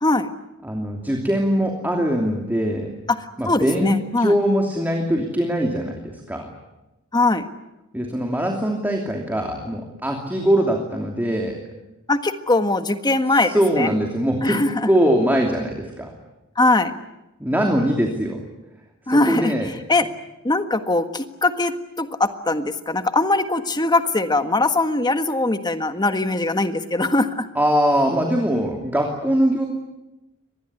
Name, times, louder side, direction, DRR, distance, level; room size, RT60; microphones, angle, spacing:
voice 1, 0.6-2.9 3.4-6.5 7.9-11.6 13.4-16.1 17.4-18.4 19.1-19.7 27.5-29.7, equal, 10° right, 1 dB, 2.9 m, -22 dB
voice 2, 3.5-4.3 7.1-7.5 12.1-13.9 14.4-14.9 16.6-16.9 19.1-19.5 19.9-20.1 20.4-27.5, left 2 dB, 20° left, 8 dB, 1.6 m, -21 dB
25.0 x 20.0 x 9.9 m, 0.97 s
head